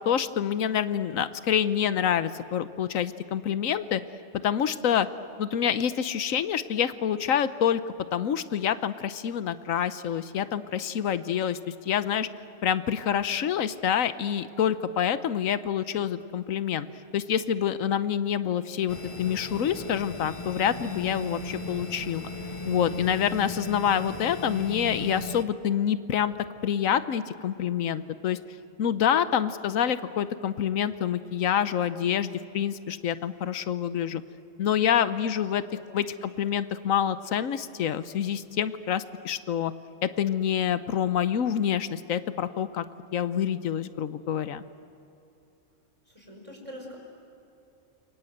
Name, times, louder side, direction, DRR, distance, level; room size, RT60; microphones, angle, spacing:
voice 1, 0.0-4.0 4.4-5.1 5.4-7.8 8.1-12.3 12.6-16.9 17.1-22.3 22.7-26.3 26.6-28.4 28.8-34.2 34.6-35.6 35.9-39.7 40.0-42.8 43.1-44.6, left 9 dB, 90° left, 13 dB, 1.2 m, -27 dB
sound 1, 18.9-25.5, left 2 dB, 30° left, 0.7 m, -37 dB
voice 2, 35.7-36.1 46.1-47.0, equal, 25° right, 1 dB, 5.3 m, -44 dB
28.5 x 24.0 x 7.9 m, 2.8 s
omnidirectional pair, 1.3 m